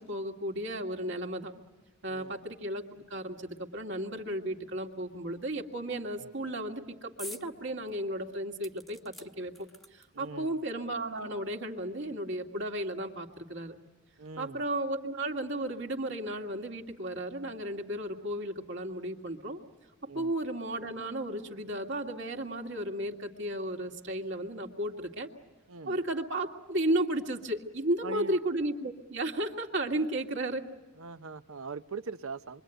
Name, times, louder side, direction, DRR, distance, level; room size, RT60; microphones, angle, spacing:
voice 1, 0.0-1.5 2.0-9.7 9.9-13.8 14.4-19.6 20.1-25.3 25.9-30.6, right 1 dB, 55° right, 3 dB, 2.3 m, -34 dB
sound 1, 7.2-7.5 7.9-8.0 8.6-10.3 11.2-11.3 11.5-11.6, equal, ahead, 1.0 m, -47 dB
voice 2, 10.1-10.5 14.2-14.6 20.1-20.3 25.7-26.0 28.0-28.4 31.0-32.6, right 5 dB, 75° right, 12 dB, 0.8 m, -41 dB
27.5 x 24.0 x 9.1 m, 1.2 s
head